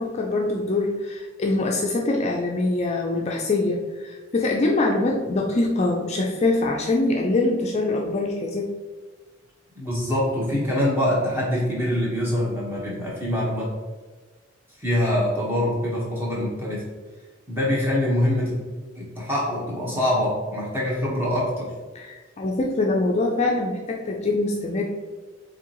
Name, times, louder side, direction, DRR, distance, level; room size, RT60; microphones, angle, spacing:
voice 1, 0.0-8.7 21.9-24.8, left 2 dB, 35° left, 0 dB, 0.4 m, -24 dB
voice 2, 9.7-13.7 14.8-16.8 17.5-18.7 18.9-21.7, left 1 dB, 10° right, -5 dB, 1.3 m, -24 dB
4.8 x 3.6 x 3.0 m, 1.3 s
head